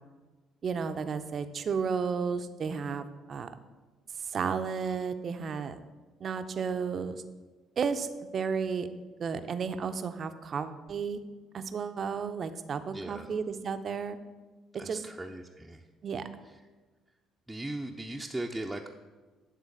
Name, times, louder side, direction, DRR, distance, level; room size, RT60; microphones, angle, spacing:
voice 1, 0.6-3.5 4.2-5.8 6.2-7.2 7.8-8.9 9.2-11.2 11.5-14.2 14.8-15.0 16.0-16.3, right 6 dB, 50° right, 10 dB, 0.6 m, -33 dB
voice 2, 12.9-13.3 14.8-15.8 17.5-18.9, right 1 dB, 10° right, 0 dB, 0.6 m, -38 dB
10.0 x 3.8 x 6.6 m, 1.3 s
hypercardioid pair, 50°, 0 cm